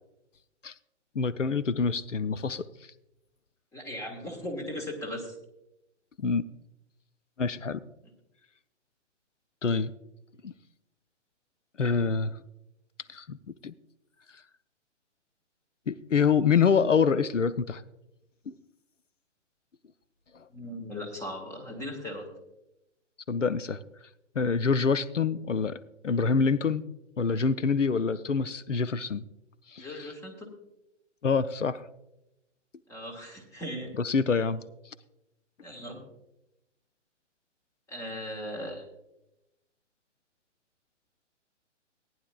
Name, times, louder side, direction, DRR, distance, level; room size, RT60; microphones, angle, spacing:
voice 1, 1.2-2.6 6.2-6.5 7.4-7.8 9.6-9.9 10.4-10.5 11.8-12.4 13.1-13.4 13.6-13.7 15.9-17.8 18.5-18.6 20.3-20.4 23.3-23.8 24.4-25.8 26.0-26.8 27.2-29.2 29.7-29.9 31.2-31.8 34.0-34.6, left 5 dB, 90° left, 13 dB, 0.6 m, -26 dB
voice 2, 3.7-5.3 20.5-22.3 29.8-30.5 32.9-33.9 35.6-36.0 37.9-38.8, left 1 dB, 10° left, 1 dB, 1.6 m, -38 dB
18.5 x 10.5 x 2.3 m, 0.90 s
figure-of-eight pair, 125°, 36 cm